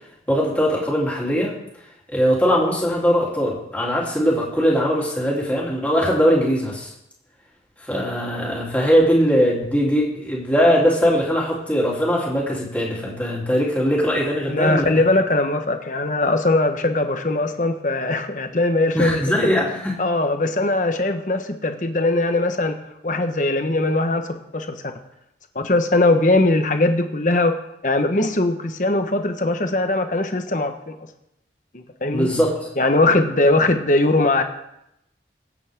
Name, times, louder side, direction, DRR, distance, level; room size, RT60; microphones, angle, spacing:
voice 1, 0.3-1.5 2.1-6.9 7.8-14.9 18.9-19.9 32.1-32.6, equal, 10° left, -4 dB, 3.4 m, -20 dB
voice 2, 14.5-19.5 20.0-22.8 23.0-24.8 25.5-27.6 27.8-30.9 31.7-32.3 32.8-34.4, left 2 dB, 45° left, 6 dB, 1.2 m, -20 dB
23.0 x 8.7 x 3.7 m, 0.83 s
head